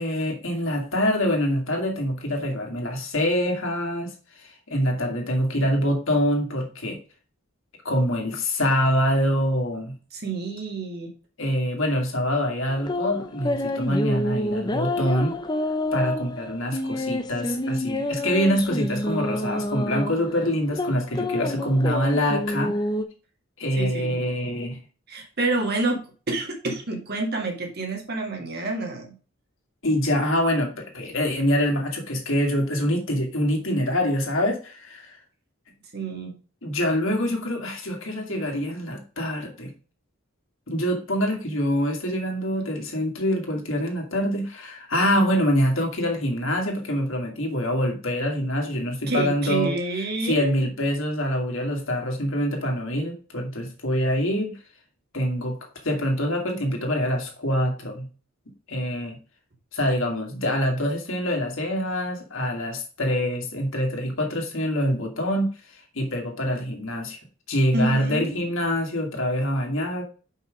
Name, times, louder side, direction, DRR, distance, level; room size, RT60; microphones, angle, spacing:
voice 1, 0.0-4.1 4.7-7.0 7.8-9.9 11.4-15.3 15.9-22.8 23.6-24.8 29.8-35.2 36.6-39.7 40.7-49.7 50.3-54.6 55.1-55.6 55.8-58.1 58.7-59.2 59.7-65.5 65.9-67.2 67.5-70.0, equal, 65° left, 2 dB, 2.1 m, -25 dB
voice 2, 10.1-11.1 23.8-24.2 25.1-29.2 35.9-36.3 49.1-50.5 67.7-68.5, right 2 dB, 50° right, 1 dB, 2.0 m, -28 dB
sound 1, 12.7-23.0, left 1 dB, 20° left, 0.6 m, -28 dB
5.7 x 5.4 x 5.0 m, 0.37 s
head